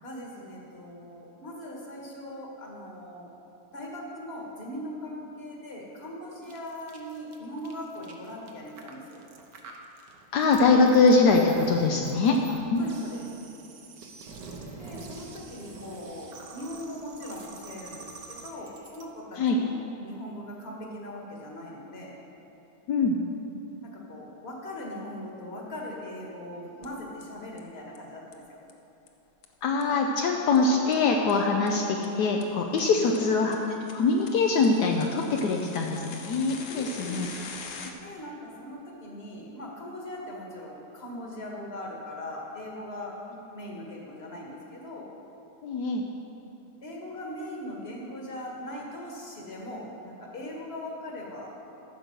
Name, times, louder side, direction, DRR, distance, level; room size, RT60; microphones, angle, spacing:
voice 1, 0.0-3.3 3.7-9.2 12.8-13.3 14.8-22.1 23.8-28.6 33.0-33.5 36.7-37.3 38.0-43.1 43.5-45.1 46.8-51.5, left 1 dB, 40° left, -2 dB, 1.7 m, -40 dB
sound 1, 6.4-19.0, right 4 dB, 90° right, 1.6 m, -46 dB
voice 2, 10.3-12.4 12.7-12.9 19.4-19.6 22.9-23.2 29.6-33.6 33.9-37.3 45.6-46.0, left 3 dB, 75° left, 1 dB, 1.2 m, -23 dB
sound 2, 26.8-26.9 27.2-27.3 27.6-27.7 27.9-28.0 28.3-28.4 28.7-28.8 29.1-29.2 29.4-29.5 29.8-29.9 30.2-30.3 30.5-30.6 30.9-31.0 31.3-31.4 31.7-31.8 32.0-32.1 32.4-32.5 32.8-32.9 33.1-33.2 33.5-37.9, left 5 dB, 55° left, 1.0 m, -43 dB
14.5 x 6.3 x 5.2 m, 2.9 s
omnidirectional pair, 1.8 m